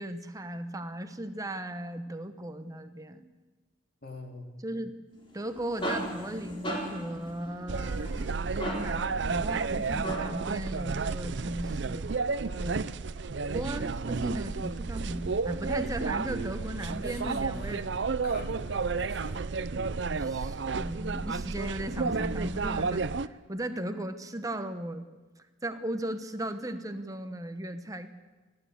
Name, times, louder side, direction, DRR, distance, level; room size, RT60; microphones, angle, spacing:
voice 1, 0.0-3.2 4.6-4.9 5.3-8.1 8.7-12.1 12.6-12.8 13.5-18.1 20.1-25.1 25.6-28.1, right 1 dB, 20° right, 9 dB, 1.1 m, -36 dB
voice 2, 4.0-4.5 16.7-17.9 18.2-19.4, left 2 dB, 55° left, 3 dB, 2.9 m, -45 dB
sound 1, 5.3-10.5, right 1 dB, 25° left, 3.8 m, -37 dB
sound 2, 7.7-23.3, right 4 dB, 65° right, 0.6 m, -32 dB
30.0 x 12.0 x 8.2 m, 1.3 s
head